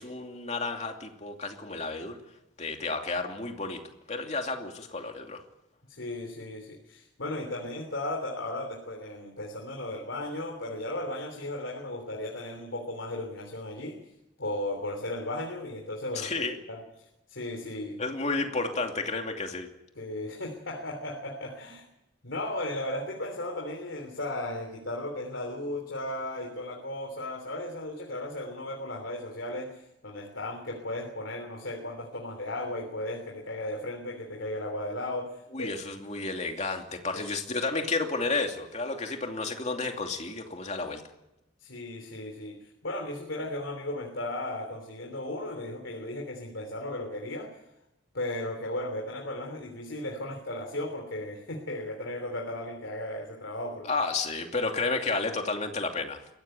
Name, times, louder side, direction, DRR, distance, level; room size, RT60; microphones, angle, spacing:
voice 1, 0.0-2.2 2.6-5.4 16.1-16.6 18.0-19.7 35.5-41.0 53.9-56.2, left 3 dB, 35° left, 3 dB, 2.7 m, -31 dB
voice 2, 5.9-14.0 14.4-16.8 17.3-18.0 19.9-21.8 22.2-35.7 37.1-37.3 41.6-47.5 48.1-53.9, left 1 dB, 75° left, 2 dB, 3.3 m, -35 dB
22.0 x 16.5 x 9.1 m, 0.91 s
head